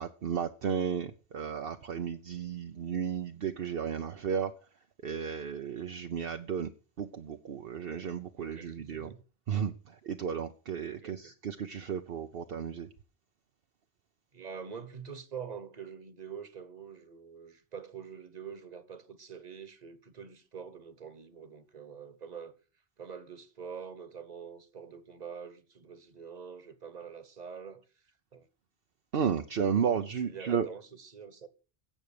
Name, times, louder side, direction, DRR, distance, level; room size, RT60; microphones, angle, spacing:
voice 1, 0.0-4.5 5.0-6.7 7.0-9.1 9.5-12.9 29.1-30.7, right 7 dB, 65° right, 1.0 m, -33 dB
voice 2, 8.4-9.2 10.8-11.4 14.3-22.5 23.0-27.8 28.3-28.5 29.8-29.9 30.3-31.5, right 7 dB, 40° right, 1.4 m, -45 dB
16.5 x 6.4 x 6.7 m
omnidirectional pair, 1.1 m